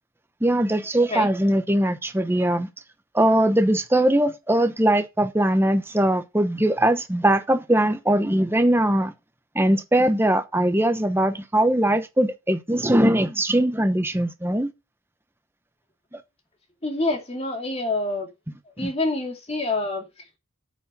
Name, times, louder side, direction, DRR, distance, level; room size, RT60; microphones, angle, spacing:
voice 1, 0.4-2.7 3.1-9.1 9.5-14.7 16.1-16.2 18.8-18.9, right 1 dB, 10° right, 0.9 m, -21 dB
voice 2, 16.8-18.3 18.8-20.0, left 2 dB, 30° left, 2.4 m, -26 dB
8.7 x 8.4 x 5.4 m
head